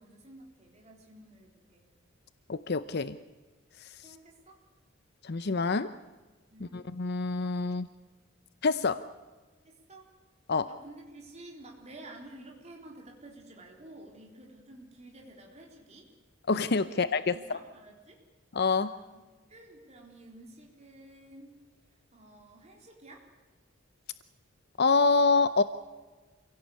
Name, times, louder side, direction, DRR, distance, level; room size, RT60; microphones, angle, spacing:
voice 1, 0.0-1.9 4.0-4.6 6.5-6.8 9.6-10.1 10.6-16.1 16.9-18.2 18.8-19.2 19.5-21.5 22.1-23.3, right 1 dB, 30° right, 0 dB, 3.6 m, -51 dB
voice 2, 2.5-3.2 5.2-5.9 6.7-7.9 8.6-9.0 10.5-10.7 16.5-17.3 18.5-18.9 24.8-25.6, left 4 dB, 50° left, 13 dB, 0.6 m, -26 dB
26.5 x 17.0 x 8.4 m, 1.3 s
head